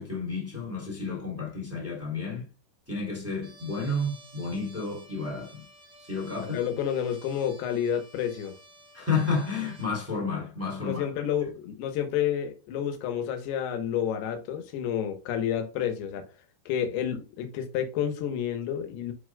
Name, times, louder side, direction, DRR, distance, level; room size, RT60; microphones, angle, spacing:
voice 1, 0.0-2.5 2.9-5.7 6.0-6.6 8.9-11.0, left 3 dB, 5° right, 1.8 m, -31 dB
Trumpet, 3.4-9.9, right 1 dB, 85° right, 0.9 m, -53 dB
voice 2, 6.4-8.5 10.8-16.3 16.7-19.1, left 9 dB, 75° left, 3.0 m, -30 dB
9.8 x 4.6 x 2.3 m
omnidirectional pair, 4.9 m